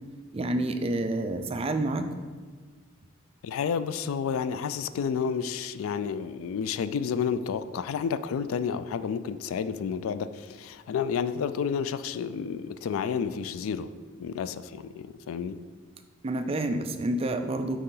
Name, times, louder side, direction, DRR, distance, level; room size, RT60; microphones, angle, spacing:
voice 1, 0.3-2.1 16.2-17.8, right 2 dB, 30° right, 7 dB, 0.4 m, -28 dB
voice 2, 3.4-13.9 14.2-15.6, left 6 dB, 75° left, 13 dB, 0.3 m, -30 dB
6.7 x 4.7 x 3.8 m, 1.5 s
head